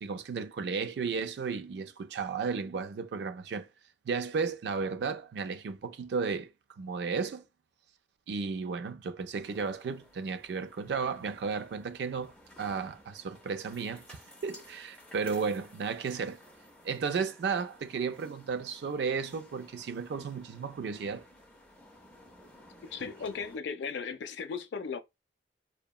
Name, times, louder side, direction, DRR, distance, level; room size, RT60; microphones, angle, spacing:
voice 1, 0.0-3.7 4.1-6.5 6.8-7.4 8.3-12.3 12.6-14.2 14.4-16.4 16.8-21.2 23.0-23.1, right 5 dB, 70° right, 0.3 m, -34 dB
sound 1, 9.4-23.6, left 1 dB, 5° left, 0.5 m, -56 dB
voice 2, 22.8-25.0, left 5 dB, 75° left, 0.4 m, -36 dB
2.8 x 2.1 x 2.2 m
head